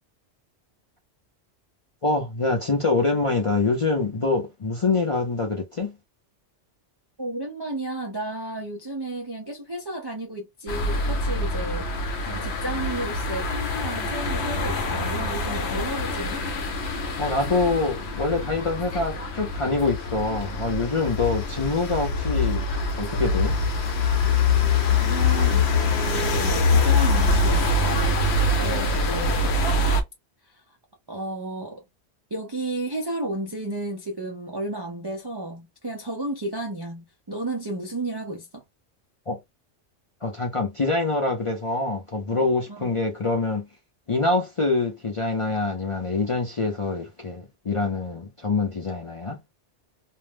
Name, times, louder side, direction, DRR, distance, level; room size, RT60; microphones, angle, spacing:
voice 1, 2.0-5.9 17.2-22.6 23.0-23.6 39.3-39.4 40.2-43.7 44.1-49.4, left 3 dB, 45° left, 0.4 m, -25 dB
voice 2, 7.2-16.4 24.9-28.2 28.6-29.5 30.4-30.8 31.1-31.8 32.3-38.6 42.7-42.9, right 2 dB, 40° right, 0.3 m, -33 dB
sound 1, 10.7-30.0, left 3 dB, 65° left, 0.9 m, -24 dB
2.5 x 2.1 x 3.2 m
omnidirectional pair, 1.2 m